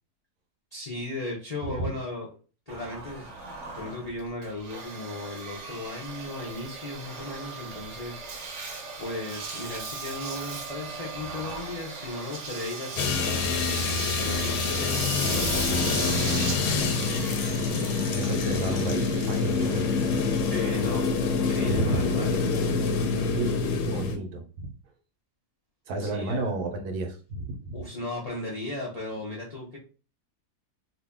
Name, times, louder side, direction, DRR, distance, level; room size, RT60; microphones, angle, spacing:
voice 1, 0.7-2.3 2.7-3.3 3.7-8.6 9.0-16.3 20.5-22.4 26.0-26.5 27.7-29.8, left 2 dB, 45° left, -4 dB, 0.5 m, -36 dB
Engine, 2.7-21.1, right 4 dB, 55° right, 0.9 m, -38 dB
sound 1, 13.0-24.2, left 4 dB, 85° left, 1.2 m, -26 dB
voice 2, 18.1-19.9 21.6-22.0 23.3-24.7 25.9-27.8, right 2 dB, 75° right, 5 dB, 1.2 m, -31 dB
2.8 x 2.6 x 3.4 m, 0.36 s
omnidirectional pair, 1.7 m